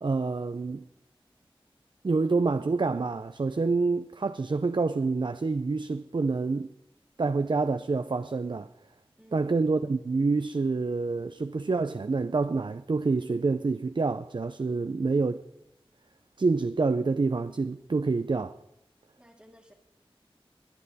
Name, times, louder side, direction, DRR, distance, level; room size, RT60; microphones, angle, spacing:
voice 1, 0.0-0.9 2.0-6.7 7.2-8.7 9.3-15.4 16.4-18.6, right 3 dB, 55° right, 0.5 m, -27 dB
voice 2, 9.2-9.8 19.2-19.7, equal, 10° right, 1.8 m, -56 dB
21.0 x 8.7 x 4.1 m
wide cardioid pair, 55°, 10 cm